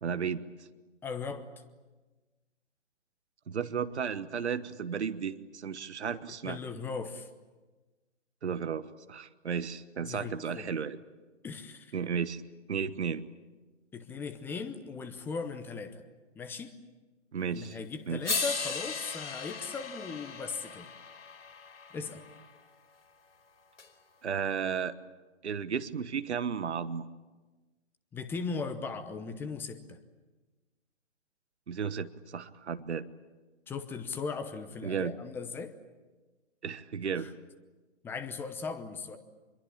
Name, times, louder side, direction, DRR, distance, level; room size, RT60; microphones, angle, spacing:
voice 1, 0.0-0.4 3.5-6.6 8.4-11.0 11.9-12.4 12.7-13.3 17.3-17.8 18.1-18.2 24.2-24.9 25.4-27.1 31.7-33.1 34.8-35.1 36.6-37.3, right 6 dB, 65° right, 13 dB, 1.3 m, -34 dB
voice 2, 1.0-1.5 6.4-7.3 10.0-10.7 11.4-12.0 13.9-16.0 16.3-16.7 17.5-20.9 21.9-22.2 28.1-30.0 33.7-35.7 37.2-37.3 38.0-39.2, left 4 dB, 5° left, 9 dB, 0.9 m, -38 dB
sound 1, 17.6-17.7 18.2-22.4 23.8-23.9, left 4 dB, 70° left, 4.8 m, -37 dB
26.5 x 23.0 x 8.7 m, 1.2 s
figure-of-eight pair, 140°, 37 cm